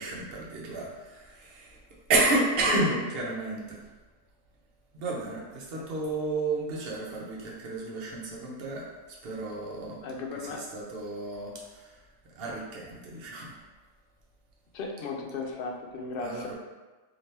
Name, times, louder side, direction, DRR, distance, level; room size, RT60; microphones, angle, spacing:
voice 1, 0.0-1.8 2.1-3.8 4.9-10.0 10.4-13.6 16.2-16.5, right 2 dB, 55° right, -3 dB, 0.9 m, -31 dB
voice 2, 2.7-3.0 5.7-5.8 10.0-10.6 14.7-16.5, left 4 dB, 60° left, 1 dB, 0.6 m, -36 dB
3.2 x 2.9 x 2.8 m, 1.3 s
omnidirectional pair, 1.4 m